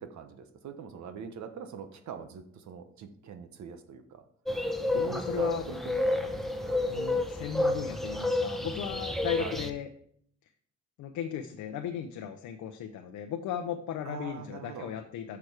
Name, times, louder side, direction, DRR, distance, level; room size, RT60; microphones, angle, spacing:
voice 1, 0.0-4.2 4.9-6.4 6.6-6.8 9.4-9.6 14.0-14.9, right 6 dB, 65° right, 8 dB, 1.0 m, -42 dB
sound 1, 4.5-9.7, left 2 dB, ahead, 0.9 m, -30 dB
voice 2, 4.9-5.6 6.8-9.9 11.0-15.4, left 9 dB, 80° left, 5 dB, 0.7 m, -36 dB
6.7 x 6.0 x 4.7 m, 0.63 s
cardioid pair, 90°, 30 cm